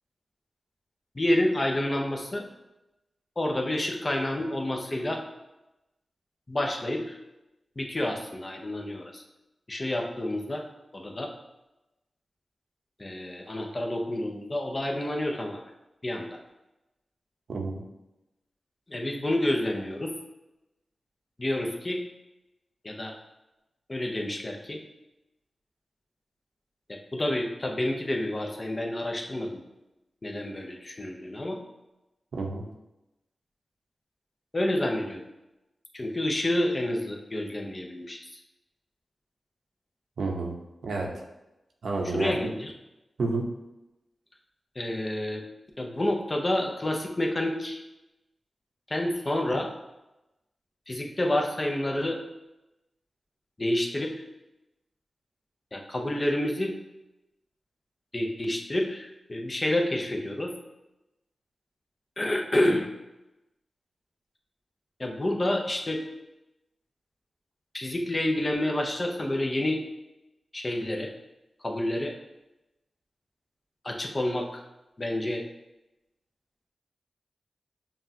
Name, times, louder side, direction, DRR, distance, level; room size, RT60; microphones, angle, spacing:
voice 1, 1.1-2.5 3.4-5.2 6.5-7.2 7.8-9.2 9.7-10.6 10.9-11.3 13.0-15.6 16.0-16.4 18.9-20.1 21.4-22.0 22.8-23.1 23.9-24.8 26.9-29.6 30.2-31.6 34.5-35.2 35.9-38.4 42.0-42.7 44.8-45.4 45.8-47.8 48.9-49.7 50.9-52.2 53.6-54.1 55.7-56.7 58.1-60.5 62.2-62.9 65.0-66.0 67.7-69.8 70.5-71.1 71.6-72.1 73.8-74.6 75.0-75.4, left 1 dB, 40° left, 2 dB, 0.7 m, -29 dB
voice 2, 32.3-32.7 40.2-40.5 40.8-41.2 41.8-42.3 43.2-43.5, right 3 dB, 85° right, 0 dB, 0.6 m, -29 dB
5.4 x 2.4 x 2.7 m, 0.96 s
cardioid pair, 50°, 0 cm